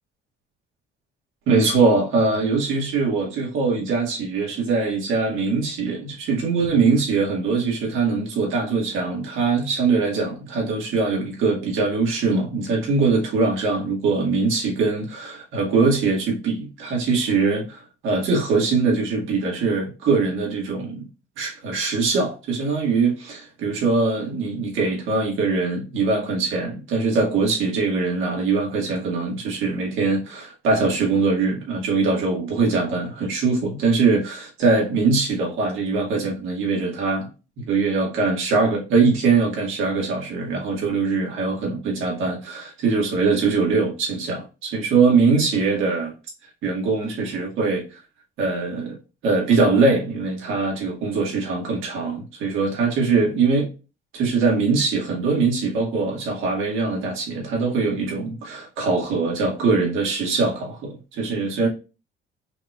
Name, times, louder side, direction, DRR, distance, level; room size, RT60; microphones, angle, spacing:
voice 1, 1.5-21.1 21.4-37.3 37.6-46.1 46.6-47.8 48.4-49.0 49.2-53.7 54.1-61.7, right 4 dB, 85° right, 2.1 m, -22 dB
5.6 x 3.0 x 2.4 m
cardioid pair, 90°, 20 cm